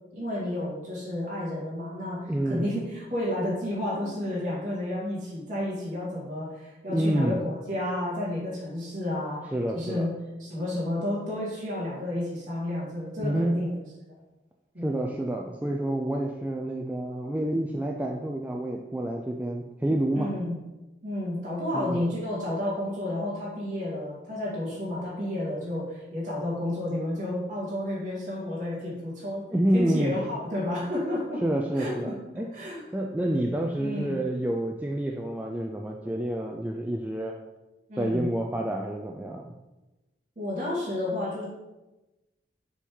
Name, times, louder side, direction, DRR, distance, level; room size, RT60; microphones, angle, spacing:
voice 1, 0.1-10.1 10.4-13.7 14.1-14.2 14.7-15.0 20.1-20.6 21.0-29.4 29.7-31.4 31.7-32.8 33.8-34.2 37.9-38.3 40.4-41.4, left 1 dB, 45° right, -7 dB, 1.8 m, -31 dB
voice 2, 2.3-2.6 6.9-7.4 9.5-10.1 13.2-13.6 14.8-20.3 21.7-22.1 29.5-30.2 31.4-32.5 32.9-37.4 38.0-39.5, right 1 dB, 10° right, 1 dB, 0.3 m, -28 dB
7.0 x 3.7 x 4.5 m, 1.0 s
head